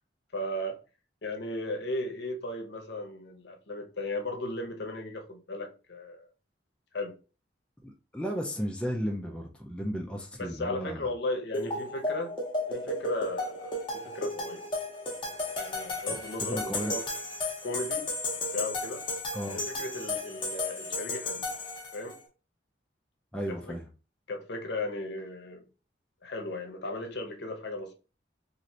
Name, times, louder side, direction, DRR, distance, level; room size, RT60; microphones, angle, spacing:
voice 1, 0.3-0.8 1.2-6.3 6.9-7.1 10.4-12.3 12.7-14.6 15.6-17.0 17.6-18.1 18.5-19.0 19.5-21.5 21.9-22.2 23.5-23.7 24.3-25.6 26.2-27.9, left 2 dB, 65° left, 0.7 m, -36 dB
voice 2, 7.8-11.1 16.1-16.2 16.5-17.0 19.3-19.6 23.3-23.9, equal, 5° left, 0.4 m, -34 dB
sound 1, 11.5-22.2, left 2 dB, 25° left, 0.8 m, -34 dB
3.1 x 2.5 x 2.7 m
head